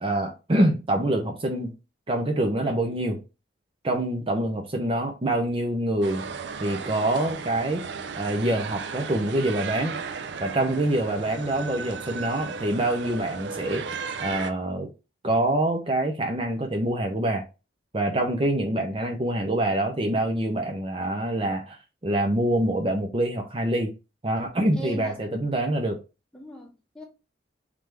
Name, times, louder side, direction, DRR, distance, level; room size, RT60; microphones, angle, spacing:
voice 1, 0.0-1.7 2.1-3.2 3.8-6.3 6.6-7.9 8.2-10.0 10.4-14.9 15.2-17.4 17.9-21.8 22.0-23.9 24.2-26.0, right 1 dB, 30° right, 0.6 m, -25 dB
sound 1, 6.0-14.5, right 5 dB, 70° right, 0.4 m, -35 dB
voice 2, 24.7-25.2 26.3-27.0, right 1 dB, 5° left, 0.9 m, -39 dB
3.7 x 3.3 x 3.1 m
head